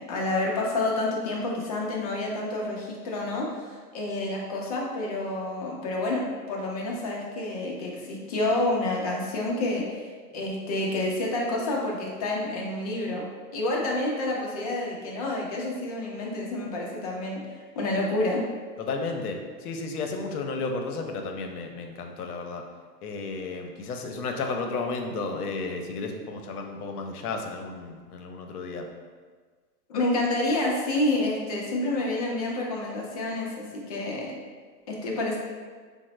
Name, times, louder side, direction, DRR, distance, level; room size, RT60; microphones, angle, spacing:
voice 1, 0.0-10.1 10.3-13.2 13.5-17.4 17.7-18.4 29.9-34.3 34.9-35.4, left 2 dB, 30° left, -2 dB, 0.3 m, -28 dB
voice 2, 18.8-22.6 23.0-28.9, left 3 dB, 70° left, 4 dB, 0.7 m, -33 dB
3.8 x 2.0 x 3.1 m, 1.5 s
hypercardioid pair, 115°, 48 cm